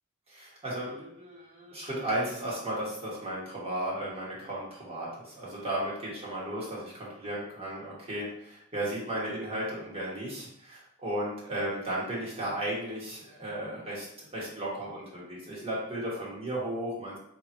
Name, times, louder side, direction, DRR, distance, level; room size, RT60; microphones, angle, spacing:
voice 1, 0.3-17.2, right 1 dB, 25° right, -6 dB, 1.3 m, -35 dB
3.4 x 3.0 x 4.3 m, 0.72 s
head